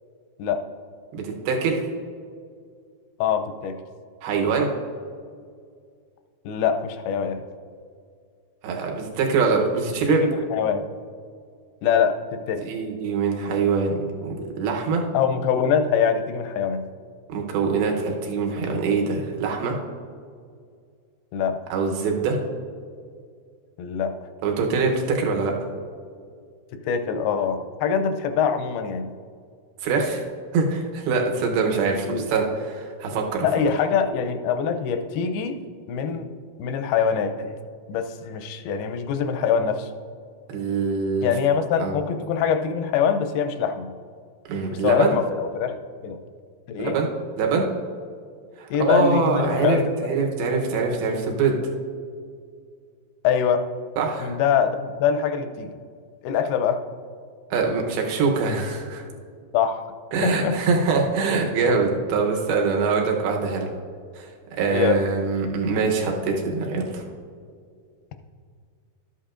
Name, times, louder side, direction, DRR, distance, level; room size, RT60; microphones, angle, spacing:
voice 1, 1.1-1.8 4.2-4.7 8.6-10.2 12.6-15.0 17.3-19.8 21.7-22.4 24.4-25.5 29.8-30.2 30.5-33.5 40.5-41.3 41.8-41.9 44.5-45.1 46.8-47.1 47.4-47.7 48.6-51.6 54.0-54.4 57.5-59.0 60.1-63.7 64.2-67.0, right 4 dB, 85° right, 1 dB, 2.9 m, -24 dB
voice 2, 3.2-3.8 6.5-7.4 10.1-10.8 11.8-12.6 15.1-16.8 21.3-21.6 23.8-24.1 26.8-29.1 32.1-32.3 33.4-35.6 35.9-36.3 36.6-37.5 37.9-39.9 41.2-43.9 44.7-45.8 46.0-46.2 46.7-47.0 48.7-49.9 53.2-53.7 54.2-55.8 56.2-56.8 59.5-59.9 60.2-60.6 64.7-65.0, left 7 dB, 85° left, 7 dB, 2.6 m, -23 dB
13.0 x 8.3 x 2.5 m, 2.1 s
omnidirectional pair, 4.3 m